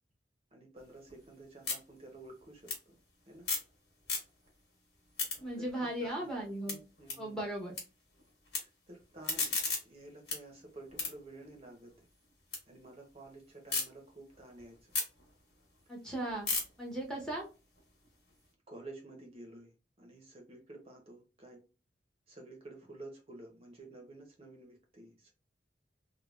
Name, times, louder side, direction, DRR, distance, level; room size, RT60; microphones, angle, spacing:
voice 1, 0.5-3.0 3.3-3.5 5.5-6.3 6.7-7.4 8.6-9.6 9.8-12.1 12.7-14.8 18.7-21.6 22.3-25.3, right 2 dB, 35° right, 1 dB, 0.6 m, -51 dB
sound 1, 0.8-3.7 4.0-4.6 4.9-7.8 8.1-8.6 9.0-12.6 13.0-13.8 14.3-18.4, left 4 dB, 70° left, 1.3 m, -39 dB
voice 2, 5.4-6.8 7.2-7.8 15.9-16.5 16.8-17.4, right 1 dB, 5° left, -2 dB, 0.7 m, -37 dB
3.2 x 2.2 x 2.3 m, 0.31 s
head